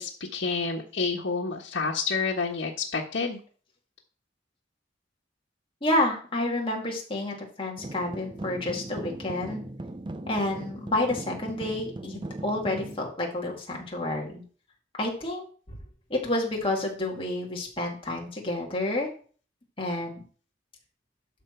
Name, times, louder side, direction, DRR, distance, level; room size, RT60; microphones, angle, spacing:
voice 1, 0.0-3.4, left 4 dB, 90° left, -2 dB, 1.4 m, -29 dB
voice 2, 5.8-9.6 10.3-14.4 15.0-15.8 16.1-19.1 19.8-20.2, left 1 dB, 30° left, -1 dB, 2.3 m, -29 dB
sound 1, 7.8-13.0, right 1 dB, 25° right, 0.5 m, -38 dB
12.0 x 4.8 x 4.6 m, 0.42 s
head